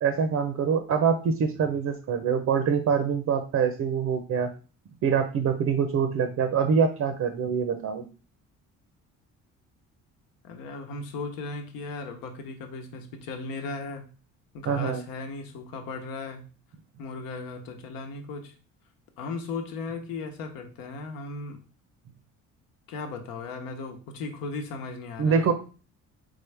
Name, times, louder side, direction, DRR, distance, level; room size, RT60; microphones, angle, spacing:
voice 1, 0.0-4.5 5.0-8.0 14.7-15.0 25.2-25.5, right 6 dB, 55° right, 7 dB, 0.7 m, -25 dB
voice 2, 10.4-14.1 14.5-16.5 17.0-18.5 19.2-21.6 22.9-25.5, left 3 dB, 85° left, 4 dB, 0.9 m, -36 dB
3.7 x 3.6 x 3.3 m, 0.36 s
supercardioid pair, 75°, 34 cm